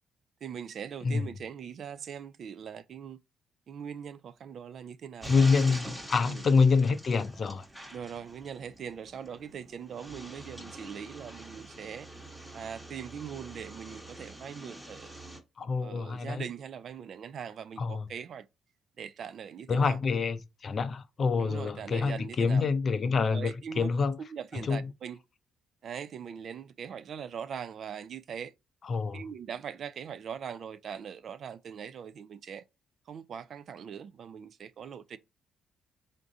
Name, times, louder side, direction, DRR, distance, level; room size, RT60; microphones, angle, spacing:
voice 1, 0.4-3.2 3.7-5.8 6.2-6.4 7.9-12.1 12.5-15.1 15.8-18.5 19.0-20.0 21.4-22.6 23.3-23.9 24.2-25.2 25.8-28.5 29.1-32.6 33.1-35.2, right 7 dB, 60° right, 0.4 m, -41 dB
voice 2, 1.0-1.3 5.3-7.7 15.6-16.4 17.8-18.1 19.7-24.2 24.5-24.9 28.8-29.3, left 4 dB, 45° left, 0.5 m, -27 dB
sound 1, 5.2-15.4, right 1 dB, 5° right, 1.1 m, -45 dB
3.6 x 2.6 x 3.9 m
cardioid pair, 90°, 0 cm